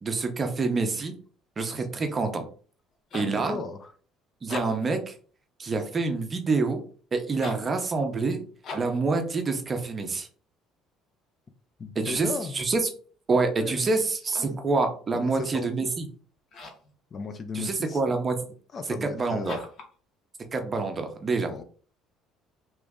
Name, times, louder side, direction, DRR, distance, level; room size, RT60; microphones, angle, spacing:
voice 1, 0.0-1.1 1.6-2.5 3.1-3.6 4.4-5.1 5.6-6.8 7.1-8.4 8.7-10.3 12.0-12.3 12.5-12.8 13.3-16.0 17.5-18.3 19.0-19.6 20.5-21.5, right 3 dB, 25° right, 5 dB, 0.6 m, -27 dB
sound 1, 2.8-3.4 4.3-5.0 7.3-7.7 8.6-9.0 14.1-14.6 16.5-16.9 19.4-19.9, left 3 dB, 45° left, 0.9 m, -40 dB
voice 2, 3.2-3.9 11.8-12.5 13.3-13.9 14.4-14.6 15.1-15.9 17.1-18.2 18.7-19.7 21.4-21.6, left 4 dB, 30° left, 8 dB, 0.4 m, -37 dB
3.0 x 2.4 x 3.5 m, 0.43 s
cardioid pair, 145°, 0 cm